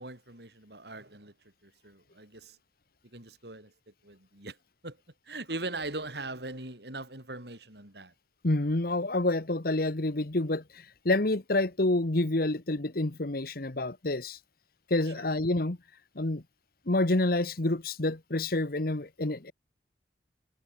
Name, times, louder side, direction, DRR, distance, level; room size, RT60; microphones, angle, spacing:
voice 1, 0.0-1.3 1.6-2.6 3.1-3.7 4.0-4.6 4.8-5.0 5.3-8.1 15.1-15.2, right 2 dB, 65° right, 5.4 m, -40 dB
voice 2, 8.4-14.4 14.9-15.8 16.1-16.4 16.9-19.5, left 2 dB, 55° left, 1.3 m, -28 dB
head